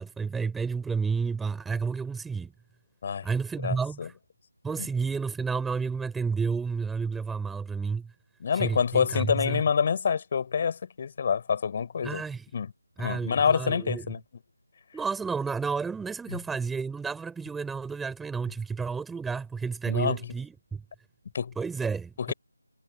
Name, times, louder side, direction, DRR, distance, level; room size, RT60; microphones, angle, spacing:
voice 1, 0.0-2.5 3.2-4.1 4.6-8.1 8.5-9.6 12.0-12.4 13.0-14.1 14.9-20.8 21.6-22.3, right 5 dB, 5° right, 3.7 m, -31 dB
voice 2, 3.6-4.1 4.8-4.9 8.4-12.2 12.5-12.7 13.0-14.2 16.3-16.4 19.9-20.2 21.3-21.5 22.2-22.3, left 6 dB, 30° left, 4.4 m, -27 dB
figure-of-eight pair, 160°, 0 cm